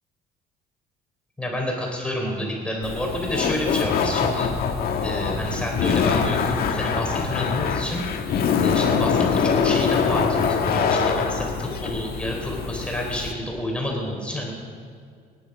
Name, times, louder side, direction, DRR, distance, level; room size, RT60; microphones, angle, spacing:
voice 1, 1.4-4.5 5.0-8.0 8.6-14.5, left 1 dB, 5° left, -1 dB, 4.1 m, -29 dB
Laughter, 2.8-13.3, left 6 dB, 65° left, 1.6 m, -24 dB
26.5 x 11.0 x 5.0 m, 2.1 s
cardioid pair, 110°, 17 cm